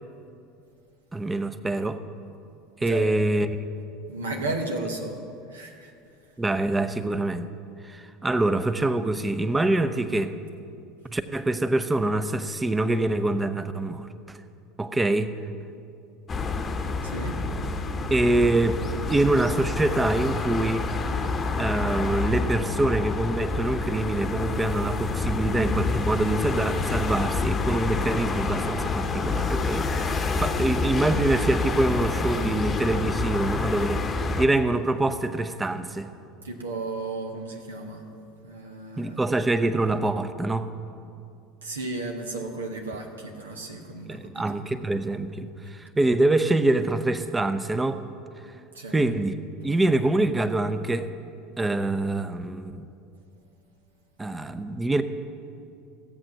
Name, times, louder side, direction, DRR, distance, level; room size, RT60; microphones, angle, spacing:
voice 1, 1.1-2.0 2.8-3.5 6.4-7.5 7.8-10.4 11.0-14.4 14.8-15.3 18.1-18.8 19.1-20.9 21.6-36.1 39.0-40.7 44.1-48.0 48.9-49.4 49.6-51.1 51.6-52.9 54.2-55.0, right 2 dB, 15° right, 11 dB, 0.7 m, -25 dB
voice 2, 2.8-3.2 4.1-5.2 5.5-5.9 17.0-17.4 36.4-38.0 38.4-39.2 41.6-44.4 48.7-48.9, right 2 dB, 80° right, 2 dB, 1.1 m, -34 dB
sound 1, 16.3-34.5, left 3 dB, 25° left, 1.0 m, -28 dB
16.0 x 7.8 x 6.0 m, 2.6 s
figure-of-eight pair, 70°, 0 cm